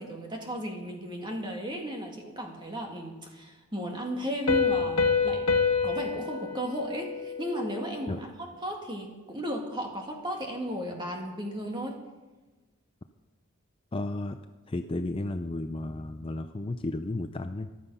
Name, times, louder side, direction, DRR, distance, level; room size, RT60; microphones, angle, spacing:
voice 1, 0.0-5.5 5.8-12.0, equal, 20° right, 1 dB, 2.1 m, -35 dB
Piano, 4.5-7.9, left 5 dB, 80° left, 1.3 m, -27 dB
voice 2, 13.9-14.4 14.7-17.7, left 2 dB, 25° left, 8 dB, 0.4 m, -33 dB
14.5 x 12.0 x 5.6 m, 1.2 s
head